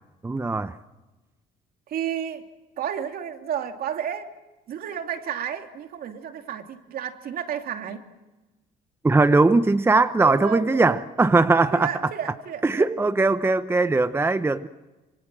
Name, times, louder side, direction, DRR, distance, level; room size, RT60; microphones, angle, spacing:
voice 1, 0.2-0.7 9.0-11.9 12.6-14.7, right 3 dB, 15° right, 11 dB, 0.9 m, -20 dB
voice 2, 1.9-2.4 2.8-4.3 4.7-8.0 10.2-11.1 11.7-12.9, right 9 dB, 60° right, 6 dB, 2.8 m, -32 dB
26.5 x 24.5 x 7.6 m, 1.1 s
cardioid pair, 110°, 17 cm